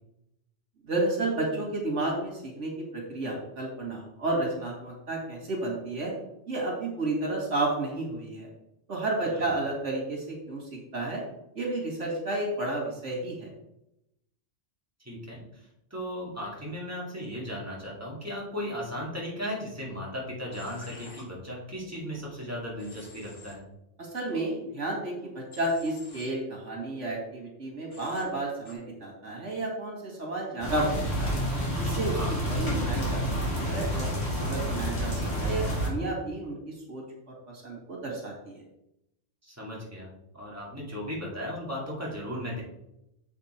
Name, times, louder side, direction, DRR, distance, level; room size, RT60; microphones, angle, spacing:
voice 1, 0.9-6.1 6.5-8.5 8.9-10.6 10.9-11.2 11.6-13.5 24.1-30.9 31.2-31.4 31.8-32.2 32.4-33.2 33.5-37.0 37.6-38.6, right 2 dB, 85° right, -1 dB, 2.4 m, -31 dB
voice 2, 15.0-15.6 15.9-23.6 32.1-32.4 39.4-42.6, equal, 10° right, -4 dB, 2.4 m, -36 dB
Human voice / Train, 20.5-21.2 22.8-23.5 25.5-26.3 27.9-28.2 28.7-28.8, left 3 dB, 85° left, 2.1 m, -49 dB
sound 1, 30.6-35.9, equal, 60° left, 3.1 m, -29 dB
7.4 x 5.9 x 4.4 m, 0.85 s
omnidirectional pair, 1.2 m